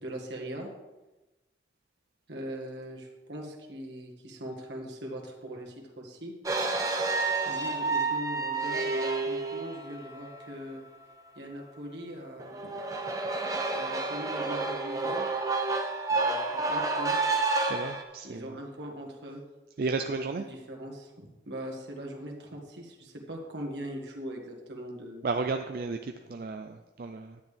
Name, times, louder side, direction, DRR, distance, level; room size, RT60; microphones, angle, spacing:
voice 1, 0.0-0.7 2.3-6.3 7.5-10.8 11.4-12.7 13.7-15.3 16.1-17.2 18.2-19.4 20.4-25.3, right 1 dB, 85° right, 0 dB, 1.7 m, -41 dB
sound 1, 6.4-10.5 12.4-18.0, right 3 dB, 20° right, 0.8 m, -30 dB
voice 2, 17.7-18.6 19.8-20.4 25.2-27.4, right 4 dB, 55° right, 6 dB, 0.4 m, -33 dB
10.5 x 8.9 x 3.4 m, 1.1 s
head